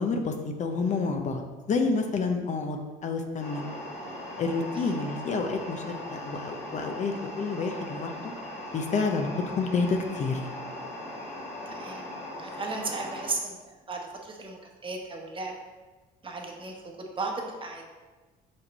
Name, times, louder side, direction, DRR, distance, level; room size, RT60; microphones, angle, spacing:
voice 1, 0.0-1.4 1.7-3.6 4.4-8.3 8.7-10.4, left 4 dB, 45° left, 4 dB, 0.7 m, -29 dB
sound 1, 3.4-13.3, left 1 dB, 80° left, 2.2 m, -39 dB
voice 2, 11.7-12.0 12.4-13.6 13.9-15.5 16.2-16.7 17.2-17.8, right 3 dB, 30° right, 1 dB, 1.1 m, -35 dB
5.4 x 5.4 x 4.2 m, 1.3 s
cardioid pair, 110°, 17 cm